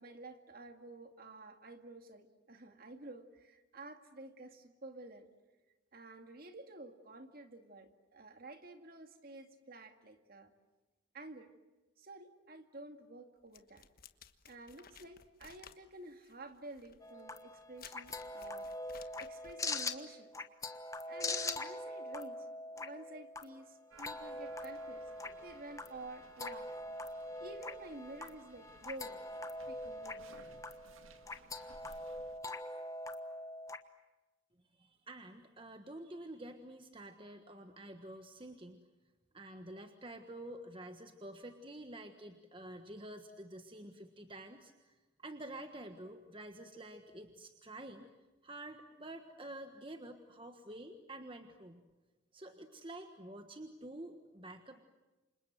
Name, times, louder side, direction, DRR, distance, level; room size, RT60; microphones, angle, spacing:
voice 1, 0.0-5.3 5.9-10.5 11.1-11.5 12.0-13.9 14.5-18.7 19.2-20.3 21.1-26.7 27.4-29.2 29.7-30.3, right 2 dB, 45° right, 7 dB, 2.2 m, -51 dB
sound 1, 13.5-19.7, left 8 dB, 45° left, 1.3 m, -57 dB
sound 2, 17.0-33.8, left 2 dB, 15° left, 1.2 m, -43 dB
sound 3, 23.9-32.4, right 3 dB, 85° right, 2.0 m, -60 dB
voice 2, 34.7-38.8 39.3-48.1 48.4-51.8 52.3-54.8, right 1 dB, 25° right, 6 dB, 1.4 m, -49 dB
29.5 x 26.5 x 7.7 m, 1.2 s
head